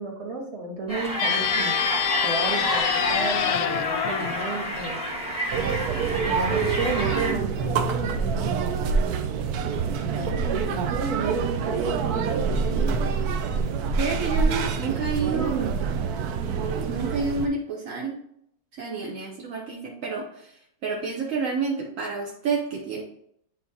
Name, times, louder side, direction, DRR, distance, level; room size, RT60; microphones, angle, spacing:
voice 1, 0.0-1.8 2.2-5.0 6.3-8.5 9.6-13.1 15.2-15.8, right 3 dB, 40° right, -1 dB, 1.2 m, -32 dB
sound 1, 0.9-7.3, right 1 dB, 5° right, 0.9 m, -29 dB
sound 2, 1.1-5.6, left 11 dB, 90° left, 1.4 m, -27 dB
sound 3, 5.5-17.5, right 5 dB, 90° right, 0.8 m, -26 dB
voice 2, 14.0-15.5 16.6-18.2 18.8-20.5 20.8-23.0, right 4 dB, 60° right, -1 dB, 0.9 m, -29 dB
8.5 x 4.1 x 2.7 m, 0.72 s
omnidirectional pair, 2.2 m